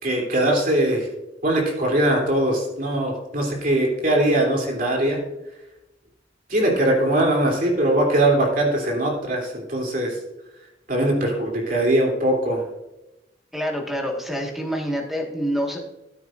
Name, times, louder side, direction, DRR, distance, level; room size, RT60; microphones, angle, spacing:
voice 1, 0.0-1.1 1.4-5.2 5.4-5.6 6.5-10.2 10.6-12.6, right 1 dB, 50° right, 0 dB, 3.2 m, -21 dB
voice 2, 13.5-15.8, equal, ahead, 1 dB, 1.7 m, -26 dB
13.5 x 9.1 x 2.6 m, 0.94 s
head